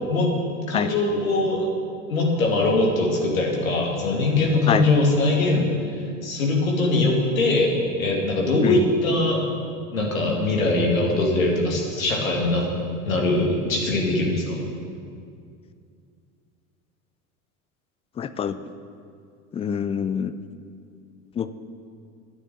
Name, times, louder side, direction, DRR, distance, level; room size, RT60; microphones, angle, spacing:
voice 1, 0.7-1.7 2.1-5.7 6.2-7.7 8.0-9.4 9.9-12.7 13.0-14.6, left 2 dB, 75° left, -1 dB, 2.4 m, -22 dB
voice 2, 18.2-18.6 19.5-20.3 21.4-21.5, left 8 dB, 15° left, 12 dB, 0.4 m, -25 dB
11.0 x 9.9 x 7.3 m, 2.3 s
figure-of-eight pair, 65°, 42 cm